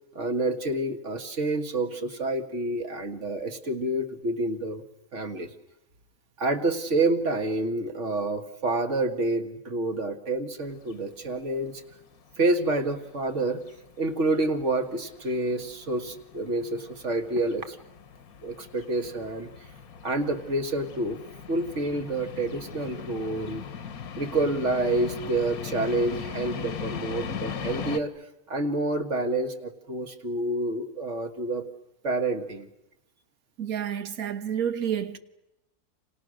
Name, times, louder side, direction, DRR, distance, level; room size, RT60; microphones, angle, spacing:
voice 1, 0.2-4.8 5.1-5.5 6.4-11.8 12.4-13.6 14.0-17.8 18.4-19.5 20.0-21.2 21.5-23.6 24.2-28.1 28.5-31.6 32.0-32.7, right 2 dB, 50° right, 2.1 m, -28 dB
sound 1, 10.6-28.0, left 7 dB, 70° left, 1.6 m, -40 dB
voice 2, 33.6-35.2, right 9 dB, 65° right, 1.7 m, -29 dB
29.5 x 27.5 x 6.4 m
omnidirectional pair, 1.6 m